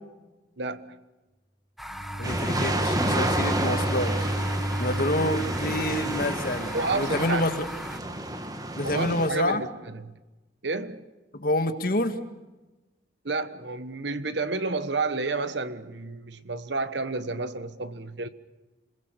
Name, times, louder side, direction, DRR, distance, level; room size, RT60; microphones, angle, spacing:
voice 1, 0.6-1.0 6.7-7.5 8.8-10.2 10.6-11.0 13.2-18.3, right 3 dB, 70° right, 1.3 m, -31 dB
sound 1, 1.8-8.0, equal, ahead, 1.3 m, -39 dB
Bowed string instrument, 1.9-6.7, equal, 85° right, 3.9 m, -32 dB
voice 2, 2.2-4.3 4.8-7.7 8.8-9.6 11.3-12.2, left 1 dB, 50° left, 1.8 m, -27 dB
sound 2, 2.2-9.3, right 1 dB, 20° right, 1.8 m, -30 dB
27.5 x 21.0 x 6.8 m
head